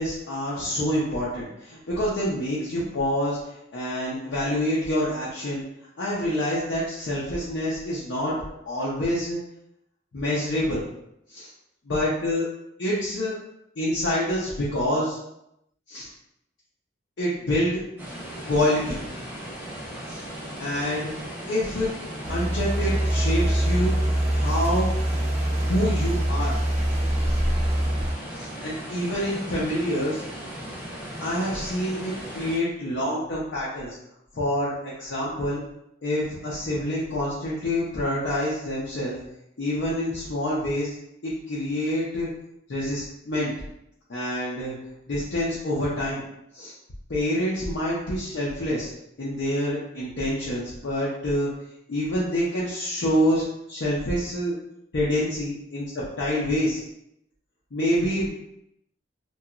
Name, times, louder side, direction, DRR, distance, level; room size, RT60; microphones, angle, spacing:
voice 1, 0.0-3.4 3.7-5.6 6.0-8.4 8.6-9.4 10.1-10.8 11.3-11.5 11.9-12.4 12.8-13.4 13.8-15.2 15.9-16.1 17.2-17.8 18.5-19.0 20.1-20.2 20.6-21.1 21.5-21.9 22.3-23.9 24.3-24.9 25.6-26.6 28.4-30.2 31.2-34.0 34.3-35.6 36.0-39.2 39.6-40.9 41.2-42.3 42.7-43.5 44.1-44.7 45.1-46.2 46.5-46.7 47.1-48.9 49.2-51.5 51.9-54.5 54.9-56.8 57.7-58.3, left 1 dB, 65° left, -7 dB, 0.6 m, -26 dB
sound 1, 18.0-32.6, equal, 10° right, 0.7 m, -37 dB
sound 2, 22.2-28.1, right 1 dB, 35° right, 0.3 m, -24 dB
2.9 x 2.3 x 2.4 m, 0.82 s
head